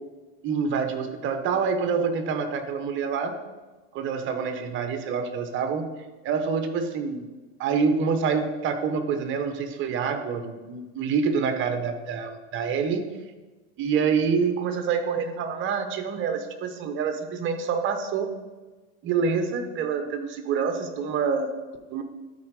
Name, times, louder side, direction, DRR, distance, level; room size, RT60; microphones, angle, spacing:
voice 1, 0.4-3.3 3.9-5.9 6.2-7.3 7.6-13.1 13.8-18.3 19.0-21.5 21.9-22.0, right 5 dB, 40° right, 8 dB, 1.0 m, -26 dB
12.5 x 4.5 x 4.8 m, 1.2 s
supercardioid pair, 130°, 31 cm